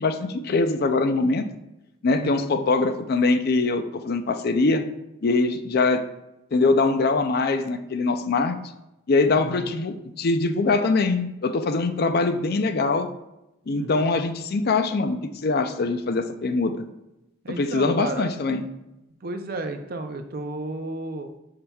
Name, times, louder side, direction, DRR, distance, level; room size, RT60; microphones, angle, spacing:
voice 1, 0.0-1.5 2.0-4.8 5.2-6.0 6.5-8.6 9.1-13.1 13.7-16.7 17.6-18.6, left 3 dB, 50° left, 9 dB, 0.4 m, -23 dB
voice 2, 2.2-2.5 9.3-9.7 13.7-14.1 17.4-18.3 19.2-21.3, right 2 dB, 50° right, 7 dB, 0.6 m, -33 dB
7.6 x 5.7 x 2.3 m, 0.91 s
head